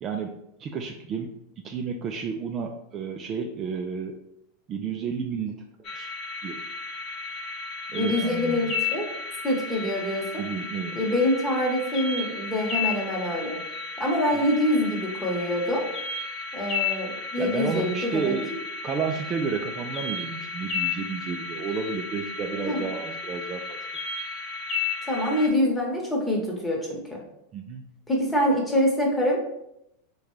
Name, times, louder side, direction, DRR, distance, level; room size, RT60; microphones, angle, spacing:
voice 1, 0.0-4.2 4.7-5.6 5.9-6.1 6.4-6.6 7.9-8.7 10.4-11.0 14.3-14.4 17.4-18.5 18.8-23.8 27.5-27.8, right 5 dB, 35° right, 4 dB, 0.3 m, -31 dB
sound 1, 5.8-25.5, left 4 dB, 35° left, 0.9 m, -33 dB
voice 2, 7.9-9.1 9.4-10.2 11.0-13.6 14.0-15.9 16.5-18.3 22.7-22.9 25.1-27.2 28.1-29.4, left 1 dB, 10° left, -2 dB, 1.0 m, -25 dB
3.6 x 2.3 x 3.1 m, 0.80 s
hypercardioid pair, 100°, 0 cm